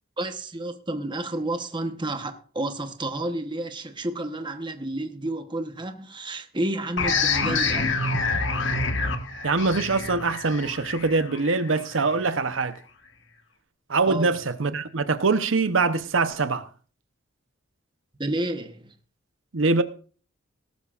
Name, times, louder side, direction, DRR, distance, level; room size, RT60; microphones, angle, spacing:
voice 1, 0.2-7.9 14.1-14.3 18.2-18.9, right 1 dB, 25° right, 1.1 m, -30 dB
sound 1, 7.0-12.3, left 4 dB, 70° left, 1.5 m, -27 dB
voice 2, 9.4-12.8 13.9-16.7 19.5-19.8, right 3 dB, 85° right, 0.9 m, -23 dB
18.0 x 12.5 x 2.5 m
head